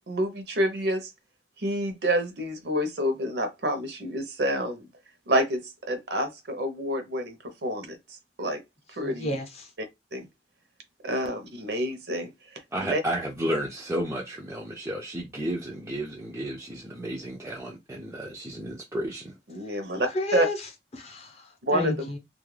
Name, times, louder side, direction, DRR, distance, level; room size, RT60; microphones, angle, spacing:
voice 1, 0.1-1.1 1.6-4.9 5.3-7.4 7.6-8.0 8.4-8.6 8.9-9.3 10.1-10.3 11.0-12.3 12.9-13.0 19.5-20.5 21.7-22.1, equal, 65° right, 0.6 m, -28 dB
voice 2, 9.0-9.7 20.1-20.6 20.9-22.2, left 1 dB, 35° left, 0.6 m, -31 dB
voice 3, 12.7-19.4, right 1 dB, 15° right, 0.3 m, -32 dB
2.3 x 2.1 x 3.1 m
head